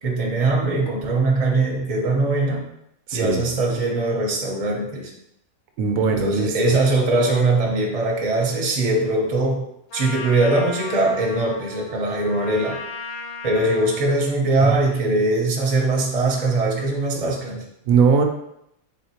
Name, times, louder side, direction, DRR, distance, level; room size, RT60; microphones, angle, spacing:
voice 1, 0.0-2.6 3.1-5.1 6.0-9.6 9.9-12.8 13.4-17.6, right 2 dB, 35° right, 0 dB, 0.7 m, -21 dB
voice 2, 3.1-3.4 5.8-6.7 14.6-14.7 17.9-18.2, right 5 dB, 80° right, 5 dB, 1.0 m, -20 dB
Trumpet, 9.9-14.2, left 3 dB, 60° left, 0.5 m, -35 dB
4.2 x 3.7 x 2.9 m, 0.76 s
omnidirectional pair, 1.5 m